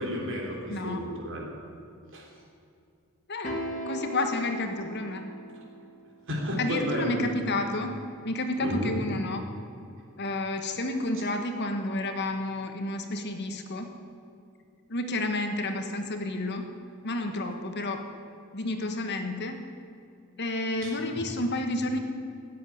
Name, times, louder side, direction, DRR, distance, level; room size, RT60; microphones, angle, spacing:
voice 1, 0.0-1.5 2.1-2.3 6.3-7.3 8.6-8.9 20.8-21.0, equal, 60° right, -1 dB, 3.5 m, -32 dB
voice 2, 0.7-1.1 3.3-5.2 6.6-7.9 8.2-9.4 10.2-13.9 14.9-16.6 17.0-18.0 18.5-19.6 20.4-22.0, left 2 dB, 50° left, 5 dB, 1.4 m, -30 dB
sound 1, 3.4-5.9, left 1 dB, 35° left, 2.1 m, -37 dB
16.0 x 8.2 x 9.9 m, 2.5 s
head